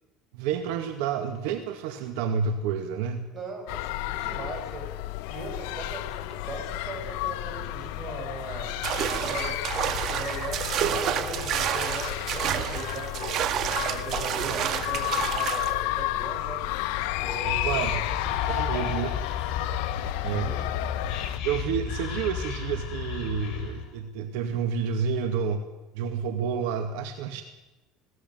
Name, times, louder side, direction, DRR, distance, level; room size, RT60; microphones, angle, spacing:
voice 1, 0.3-3.3 17.5-18.0 18.6-19.1 20.2-20.6 21.4-25.6 25.9-27.4, right 7 dB, 80° right, 7 dB, 2.2 m, -29 dB
voice 2, 3.3-4.9 5.3-8.7 9.2-13.4 13.8-16.7 17.2-19.2 20.2-20.6, right 3 dB, 35° right, 3 dB, 7.5 m, -39 dB
sound 1, 3.7-21.4, left 16 dB, 80° left, 1.2 m, -32 dB
sound 2, 8.8-15.7, right 10 dB, 50° right, 1.8 m, -29 dB
Whispering, 17.0-23.9, left 7 dB, 55° left, 7.4 m, -33 dB
20.0 x 18.0 x 9.4 m, 1.0 s
cardioid pair, 125°, 0 cm